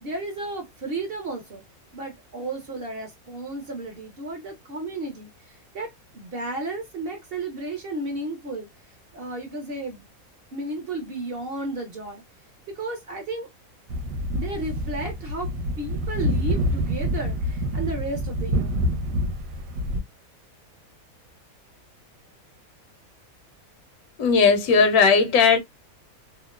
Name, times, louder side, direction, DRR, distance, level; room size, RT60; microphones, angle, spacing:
voice 1, 0.0-1.6 1.9-8.7 9.1-10.0 10.5-12.2 12.7-13.5 14.3-15.5 15.8-18.8, right 2 dB, 55° right, 0.7 m, -33 dB
sound 1, 13.9-20.0, equal, 75° right, 1.0 m, -27 dB
voice 2, 24.2-25.6, left 5 dB, 85° left, 1.1 m, -17 dB
2.8 x 2.0 x 2.2 m
omnidirectional pair, 1.5 m